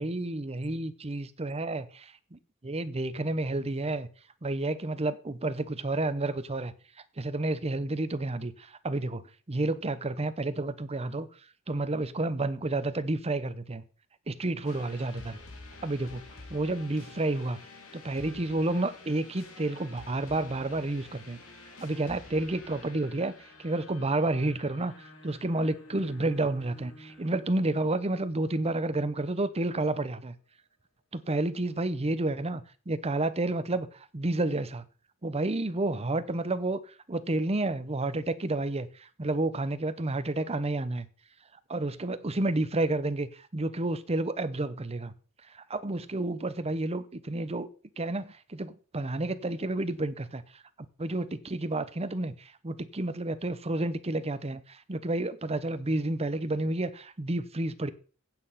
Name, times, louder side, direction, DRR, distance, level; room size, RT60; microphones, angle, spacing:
voice 1, 0.0-4.1 4.4-6.7 7.2-9.2 9.5-11.3 11.7-13.8 14.3-15.4 15.8-17.6 17.9-21.4 21.8-23.3 23.6-30.3 31.1-34.8 35.2-41.1 41.7-45.1 45.5-47.7 48.0-50.6 51.0-57.9, right 2 dB, 30° right, 0.8 m, -30 dB
sound 1, 14.6-29.4, left 2 dB, 70° left, 2.9 m, -50 dB
8.9 x 7.6 x 5.7 m
head